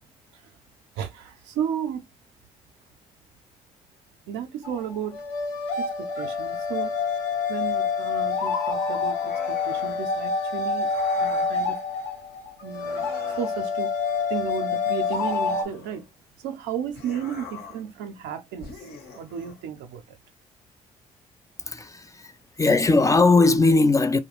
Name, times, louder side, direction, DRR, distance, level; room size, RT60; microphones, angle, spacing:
voice 1, 1.0-2.0 4.3-5.3 5.8-6.9 7.5-10.9 11.2-11.8 12.6-13.9 14.3-16.1 16.4-18.7 19.1-20.0, right 8 dB, 75° right, 0.5 m, -33 dB
sound 1, 4.6-15.6, left 5 dB, 80° left, 0.6 m, -27 dB
sound 2, 9.1-10.1 10.8-11.6 12.7-13.8 15.0-16.2 16.9-17.9 18.6-19.6, left 4 dB, 60° left, 1.0 m, -43 dB
voice 2, 21.7-22.3 22.6-24.2, left 3 dB, 20° left, 0.4 m, -19 dB
2.3 x 2.1 x 3.0 m
hypercardioid pair, 45°, 18 cm